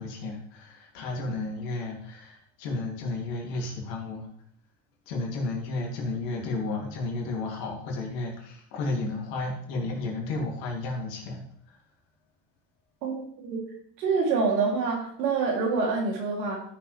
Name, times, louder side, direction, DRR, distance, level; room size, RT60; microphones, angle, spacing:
voice 1, 0.0-4.3 5.1-11.4, left 2 dB, 75° left, 0 dB, 2.9 m, -32 dB
voice 2, 13.0-13.6 14.0-16.6, right 4 dB, 85° right, -1 dB, 3.1 m, -26 dB
13.0 x 6.7 x 3.4 m, 0.64 s
hypercardioid pair, 70°, 49 cm